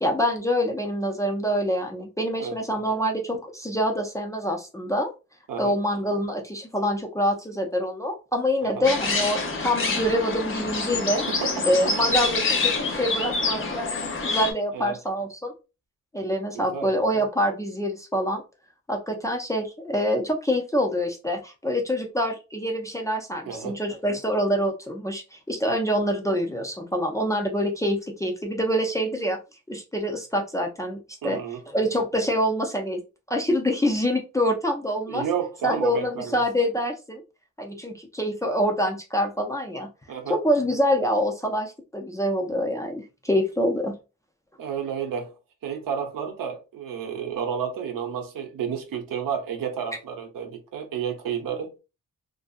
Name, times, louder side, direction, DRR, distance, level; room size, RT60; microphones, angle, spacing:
voice 1, 0.0-5.1 5.6-11.2 11.6-15.5 16.1-18.4 18.9-29.4 29.7-31.4 31.7-33.0 33.3-35.2 35.6-37.2 37.6-39.9 40.3-44.0, equal, 10° left, 0.3 m, -26 dB
sound 1, 8.8-14.5, left 3 dB, 40° left, 0.7 m, -26 dB
voice 2, 11.3-11.7 14.7-15.0 16.5-16.9 23.4-23.7 31.2-31.6 35.1-36.4 40.1-40.4 44.6-45.3 45.6-51.7, right 7 dB, 80° right, 0.7 m, -31 dB
2.5 x 2.4 x 2.3 m
wide cardioid pair, 145°, 33 cm